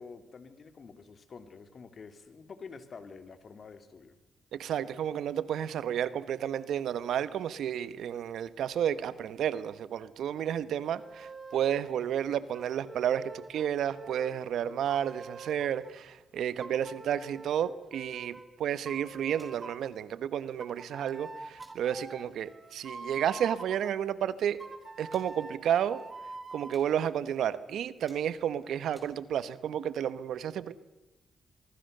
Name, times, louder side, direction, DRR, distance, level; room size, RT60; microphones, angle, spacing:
voice 1, 0.0-4.1 10.6-10.8, left 5 dB, 50° left, 10 dB, 2.9 m, -48 dB
voice 2, 4.5-24.6 25.0-26.0 26.5-30.7, right 9 dB, 80° right, 16 dB, 1.2 m, -31 dB
sound 1, 10.9-11.9 12.5-15.9 16.6-18.5 18.8-19.9 20.6-23.9 24.6-26.8, right 3 dB, 30° right, 3.3 m, -46 dB
sound 2, 19.4-19.6 20.8-21.2 21.6-21.8 22.3-22.4 22.7-23.0 23.8-23.9 24.0-24.1 25.1-25.3 26.0-26.3 26.5-26.9 27.5-27.6 27.9-29.1, equal, 5° right, 6.2 m, -60 dB
23.5 x 23.5 x 6.8 m, 1.0 s
cardioid pair, 70°, 0 cm